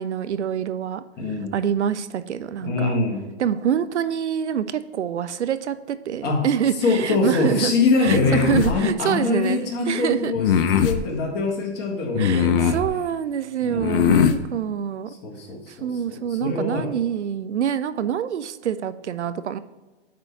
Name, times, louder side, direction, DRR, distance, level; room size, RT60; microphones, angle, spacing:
voice 1, 0.0-1.0 1.5-3.0 3.4-7.7 8.0-10.3 12.2-15.1 15.7-19.6, right 9 dB, 85° right, 14 dB, 0.7 m, -26 dB
voice 2, 1.2-1.5 2.6-3.3 6.2-6.5 6.8-10.5 10.8-12.8 13.6-14.3 15.2-16.9, left 3 dB, 30° left, -1 dB, 1.8 m, -24 dB
sound 1, 8.1-8.8 10.4-11.0 12.1-12.9 13.8-14.4, left 8 dB, 55° left, 0.7 m, -20 dB
9.5 x 3.7 x 4.6 m, 1.2 s
hypercardioid pair, 125°, 34 cm